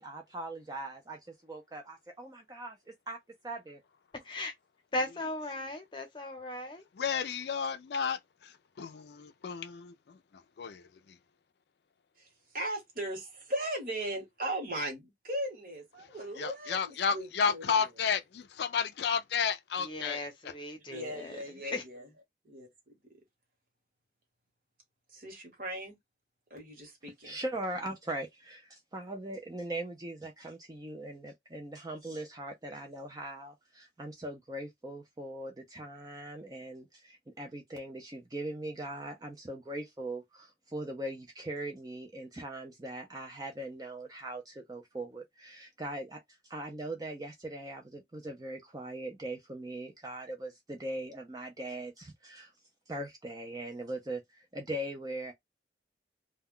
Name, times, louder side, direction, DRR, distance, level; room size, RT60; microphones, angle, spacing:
voice 1, 0.0-3.2 3.4-3.8 27.2-52.5 52.9-55.3, right 1 dB, 20° right, 0.4 m, -40 dB
voice 2, 4.9-6.8 19.8-21.4 21.7-21.8, left 2 dB, 25° left, 0.7 m, -37 dB
voice 3, 7.0-11.2 16.0-16.1 16.4-20.5, left 6 dB, 70° left, 0.4 m, -33 dB
voice 4, 12.5-17.8 20.9-22.1 22.4-22.7 23.1-23.2 25.1-26.0 26.5-27.4, right 1 dB, 50° right, 1.1 m, -38 dB
2.2 x 2.2 x 3.6 m
head